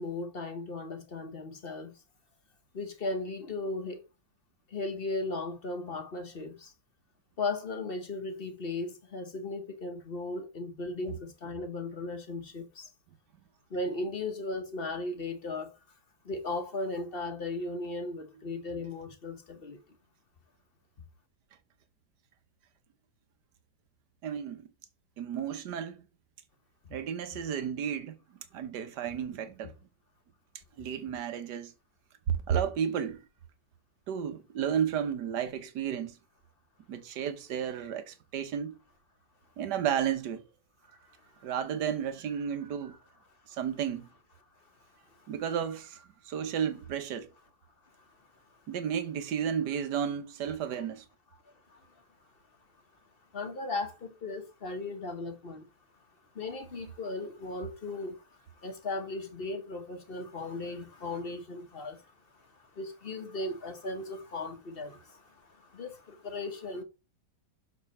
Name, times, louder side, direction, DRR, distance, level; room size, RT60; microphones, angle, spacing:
voice 1, 0.0-1.9 2.7-4.0 4.7-6.7 7.4-12.9 13.7-15.7 16.2-19.8 51.7-51.8 53.3-55.7 56.3-58.2 58.6-62.0 62.8-65.2 65.6-66.8, left 2 dB, 35° left, 1.2 m, -36 dB
voice 2, 24.2-24.7 25.2-26.0 26.9-28.1 28.5-29.7 30.8-31.7 32.3-33.2 34.1-36.2 36.9-38.7 39.6-40.4 41.4-43.0 43.5-44.1 45.3-47.3 48.7-51.0, right 8 dB, 75° right, 1.6 m, -32 dB
6.7 x 4.7 x 5.3 m
omnidirectional pair, 1.8 m